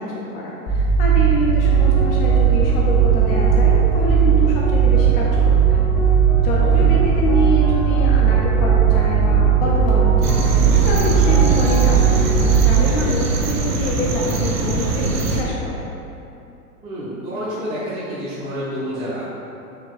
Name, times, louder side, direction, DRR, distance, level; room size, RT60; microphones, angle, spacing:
voice 1, 0.0-5.8 6.4-15.8, left 2 dB, 40° left, -4 dB, 0.5 m, -26 dB
sound 1, 0.7-12.8, right 8 dB, 70° left, 0.9 m, -16 dB
sound 2, 1.6-14.1, left 1 dB, 5° left, 1.1 m, -30 dB
sound 3, 10.2-15.4, right 2 dB, 85° right, 0.6 m, -22 dB
voice 2, 16.8-19.2, equal, 15° right, -12 dB, 0.7 m, -29 dB
4.2 x 2.8 x 2.4 m, 2.8 s
hypercardioid pair, 105°, 46 cm